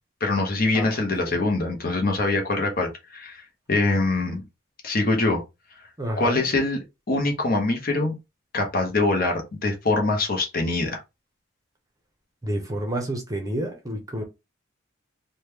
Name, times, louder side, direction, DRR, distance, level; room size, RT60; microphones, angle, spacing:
voice 1, 0.2-4.4 4.8-5.4 6.2-8.1 8.5-11.0, left 2 dB, 45° left, 0.8 m, -24 dB
voice 2, 0.7-1.4 6.0-6.5 12.4-14.2, right 1 dB, 20° right, 0.7 m, -30 dB
3.0 x 2.2 x 3.4 m
head